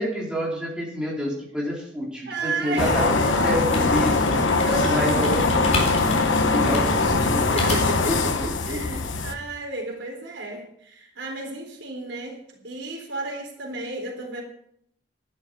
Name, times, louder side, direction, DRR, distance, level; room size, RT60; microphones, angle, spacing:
voice 1, 0.0-4.4 4.9-5.7 6.5-7.5 8.1-9.0, equal, 5° right, -4 dB, 3.8 m, -28 dB
voice 2, 2.3-3.4 4.6-6.8 7.4-8.3 8.6-14.4, right 2 dB, 75° right, 1 dB, 3.8 m, -33 dB
sound 1, 2.8-9.3, left 3 dB, 85° left, 1.2 m, -22 dB
sound 2, 3.4-8.1, left 1 dB, 35° left, 4.0 m, -31 dB
12.0 x 11.5 x 5.5 m, 0.71 s
head